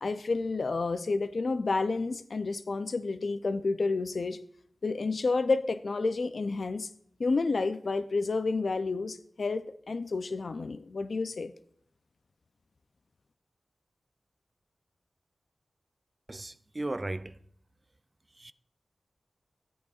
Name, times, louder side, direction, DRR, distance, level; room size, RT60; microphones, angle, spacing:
voice 1, 0.0-4.4 4.8-6.9 7.2-11.5, left 3 dB, 60° left, 0.4 m, -30 dB
voice 2, 16.3-17.4 18.4-18.5, right 2 dB, 30° right, 0.3 m, -36 dB
16.0 x 8.6 x 2.4 m
wide cardioid pair, 80°, 0 cm